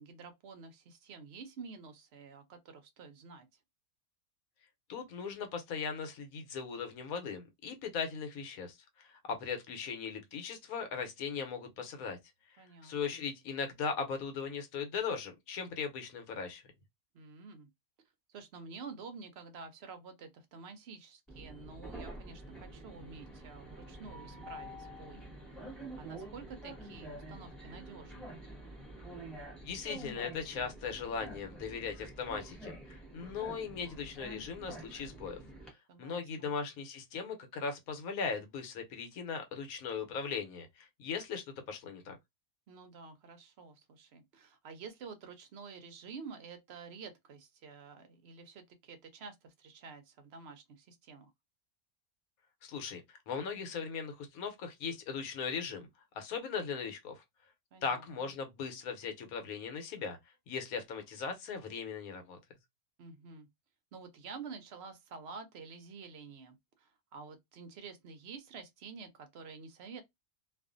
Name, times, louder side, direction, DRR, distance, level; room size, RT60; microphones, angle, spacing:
voice 1, 0.0-3.6 12.6-13.2 17.1-17.7 18.3-25.3 25.6-28.4 35.9-36.5 42.7-51.3 57.7-58.3 63.0-63.5 63.9-70.0, right 5 dB, 60° right, 0.7 m, -49 dB
voice 2, 4.9-12.2 12.8-16.6 29.6-35.4 36.0-42.2 52.6-55.9 56.1-57.2 57.8-60.2 60.5-62.4, left 5 dB, 85° left, 1.2 m, -38 dB
Train, 21.3-35.7, right 1 dB, ahead, 0.9 m, -47 dB
2.5 x 2.3 x 2.5 m
omnidirectional pair, 1.5 m